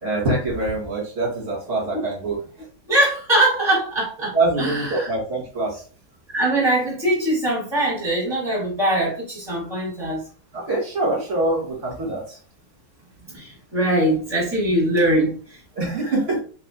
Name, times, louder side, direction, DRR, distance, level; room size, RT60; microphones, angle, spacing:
voice 1, 0.0-2.4 4.3-5.8 10.5-12.2 15.8-16.4, right 2 dB, 30° right, -3 dB, 1.9 m, -24 dB
voice 2, 2.9-5.1 6.3-10.2 13.3-15.3, right 1 dB, 10° right, -5 dB, 1.9 m, -22 dB
4.6 x 4.1 x 2.5 m, 0.40 s
omnidirectional pair, 3.6 m